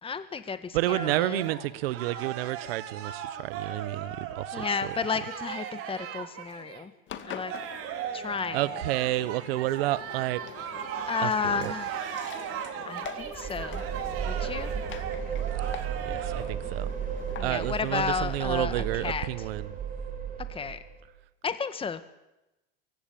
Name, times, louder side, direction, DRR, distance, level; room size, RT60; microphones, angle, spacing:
voice 1, 0.0-1.4 4.5-6.9 7.2-7.5 8.1-8.6 11.1-11.9 12.9-13.8 14.2-14.7 17.4-19.3 20.5-20.8 21.4-22.0, left 5 dB, 20° left, 11 dB, 1.7 m, -32 dB
voice 2, 0.7-4.9 8.5-10.4 11.2-11.7 16.0-16.9 17.4-19.7, right 16 dB, 75° right, 17 dB, 1.2 m, -30 dB
sound 1, 0.9-6.9 7.2-16.4, right 9 dB, 50° right, 3.4 m, -38 dB
Engine, 7.1-19.2, left 10 dB, 40° left, 2.1 m, -45 dB
sound 2, 13.2-21.1, right 8 dB, 30° right, 4.3 m, -34 dB
23.5 x 16.5 x 8.8 m, 0.97 s
hypercardioid pair, 105°, 30 cm